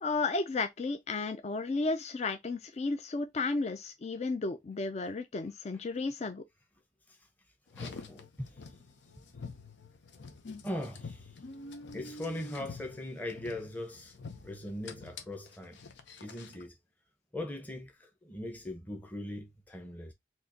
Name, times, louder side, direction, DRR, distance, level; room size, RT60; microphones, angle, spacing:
voice 1, 0.0-6.4, left 3 dB, 35° left, 0.4 m, -33 dB
Car, 7.7-16.7, left 3 dB, 85° left, 0.7 m, -47 dB
voice 2, 7.7-8.6 10.6-11.3 11.9-14.2 14.4-15.8 16.2-16.8 17.3-20.1, left 1 dB, 10° left, 0.8 m, -40 dB
4.4 x 2.9 x 2.6 m
head